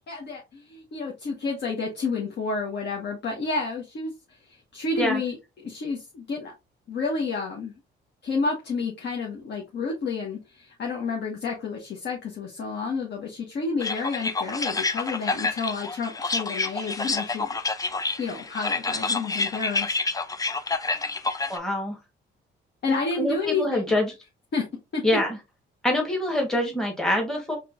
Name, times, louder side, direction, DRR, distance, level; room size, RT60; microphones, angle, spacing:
voice 1, 0.1-4.1 4.7-6.5 6.9-7.7 8.2-17.5 18.2-20.0 22.8-23.9 24.5-24.6 24.9-25.0, left 4 dB, 60° left, 1.2 m, -30 dB
sound 1, 13.8-21.6, left 3 dB, 20° left, 0.5 m, -28 dB
voice 2, 21.5-22.0 23.2-24.1 25.0-25.4 25.8-27.6, left 1 dB, ahead, 1.2 m, -25 dB
4.4 x 3.2 x 2.5 m
cardioid pair, 90°, 20 cm